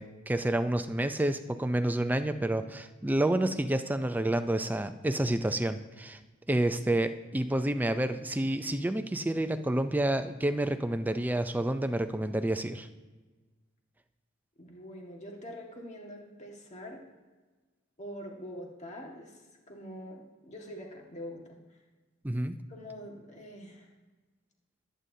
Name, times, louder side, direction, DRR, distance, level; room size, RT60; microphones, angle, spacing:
voice 1, 0.0-6.2 6.5-12.9 22.2-22.6, right 1 dB, 10° right, 9 dB, 0.4 m, -29 dB
voice 2, 14.6-17.0 18.0-21.6 22.7-23.9, equal, 35° left, 0 dB, 1.7 m, -44 dB
21.0 x 9.1 x 2.8 m, 1.3 s
head